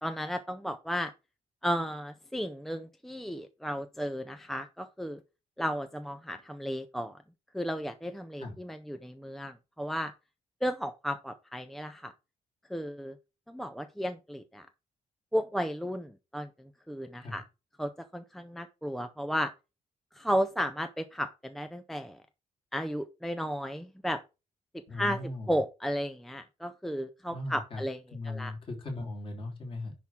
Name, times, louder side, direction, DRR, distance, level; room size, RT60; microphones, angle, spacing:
voice 1, 0.0-1.1 1.6-5.2 5.6-7.1 7.5-10.1 10.6-12.1 12.7-13.1 13.5-14.7 15.3-16.5 16.9-17.4 17.8-19.5 20.2-22.2 22.7-24.2 24.9-28.0 28.2-28.5, equal, ahead, 8 dB, 0.4 m, -34 dB
voice 2, 24.9-25.6 27.3-27.9 28.1-29.9, left 2 dB, 35° left, 0 dB, 3.3 m, -38 dB
10.5 x 3.6 x 5.9 m, 0.29 s
wide cardioid pair, 170°, 14 cm